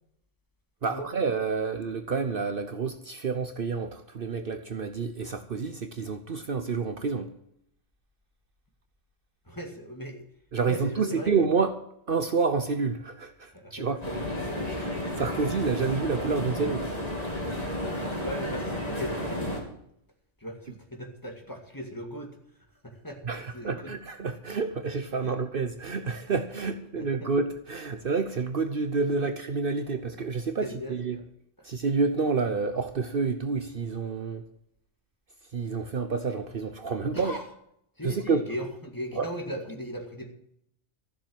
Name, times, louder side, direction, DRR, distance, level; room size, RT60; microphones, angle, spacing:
voice 1, 0.8-7.3 10.5-11.7 12.1-14.0 14.8-16.8 23.2-31.2 31.6-34.4 35.5-37.4 38.0-38.5 39.1-39.3, right 4 dB, 55° right, 1.0 m, -29 dB
voice 2, 9.5-10.2 10.6-11.3 13.5-14.2 14.4-15.0 17.8-19.6 20.4-22.4 22.8-23.9 25.2-25.4 26.6-27.3 30.6-31.2 37.1-37.4 38.0-40.3, equal, 15° left, 2.2 m, -38 dB
sound 1, 14.0-19.6, left 1 dB, 35° left, 3.5 m, -32 dB
14.0 x 7.5 x 8.8 m
omnidirectional pair, 1.2 m